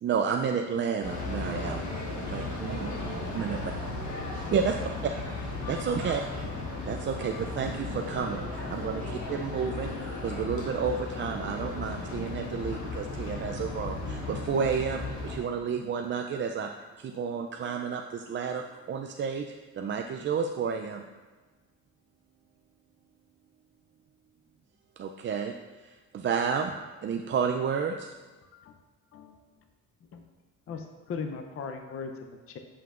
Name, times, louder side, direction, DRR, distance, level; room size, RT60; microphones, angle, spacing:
voice 1, 0.0-1.8 2.3-2.9 3.3-3.6 4.5-4.7 5.7-6.2 6.9-16.7 17.0-19.5 19.7-21.0 25.0-26.7 27.0-28.1, right 6 dB, 40° right, 4 dB, 0.4 m, -31 dB
sound 1, 1.0-15.4, left 2 dB, 75° left, 1.3 m, -35 dB
voice 2, 1.6-4.8 5.1-5.3 5.9-6.5 9.0-9.4, right 3 dB, 60° right, -3 dB, 1.7 m, -47 dB
sound 2, 5.0-10.4, equal, 20° left, 1.6 m, -50 dB
voice 3, 28.4-28.8 29.1-29.4 30.1-30.2 30.7-32.6, left 5 dB, 50° left, 5 dB, 0.6 m, -38 dB
7.5 x 5.7 x 2.5 m, 1.3 s
cardioid pair, 90°, 30 cm